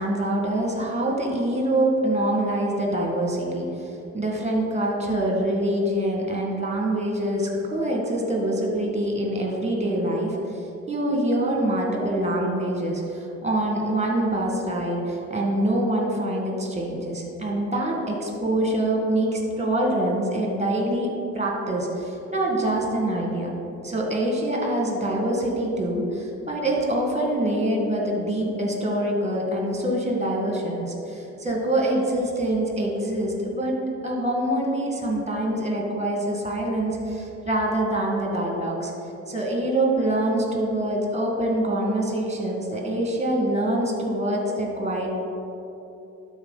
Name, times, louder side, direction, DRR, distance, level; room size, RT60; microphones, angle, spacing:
voice 1, 0.0-23.5 23.8-33.8 34.0-38.9 39.3-45.1, right 1 dB, 20° right, -1 dB, 1.8 m, -25 dB
12.0 x 4.2 x 4.0 m, 2.8 s
cardioid pair, 90°, 30 cm